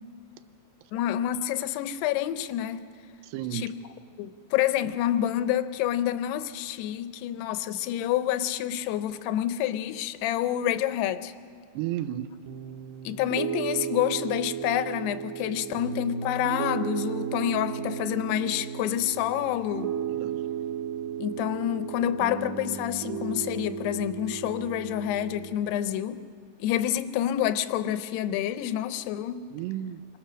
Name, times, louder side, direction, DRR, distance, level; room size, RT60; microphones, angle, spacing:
voice 1, 0.9-2.9 3.5-3.7 4.2-11.3 13.0-19.9 21.2-26.2 26.6-29.5, left 11 dB, 85° left, 2.9 m, -28 dB
voice 2, 3.2-3.7 11.7-12.4 20.1-20.5 29.5-30.1, right 12 dB, 85° right, 2.9 m, -33 dB
Piano, 12.5-25.5, right 8 dB, 70° right, 2.4 m, -34 dB
28.5 x 26.0 x 6.3 m
omnidirectional pair, 4.7 m